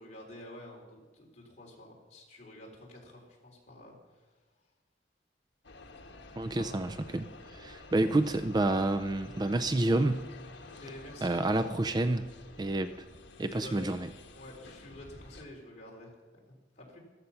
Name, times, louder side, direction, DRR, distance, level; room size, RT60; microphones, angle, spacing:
voice 1, 0.0-4.3 6.5-6.8 10.7-11.6 13.5-13.9 14.3-16.1 16.5-17.0, left 1 dB, 40° left, -2 dB, 3.8 m, -49 dB
sound 1, 5.6-15.5, left 2 dB, 75° left, 1.3 m, -50 dB
voice 2, 6.4-7.3 7.5-10.3 11.2-12.3 12.6-13.1 13.4-14.1, right 2 dB, 20° right, 9 dB, 0.4 m, -29 dB
14.5 x 13.0 x 5.7 m, 1.3 s
head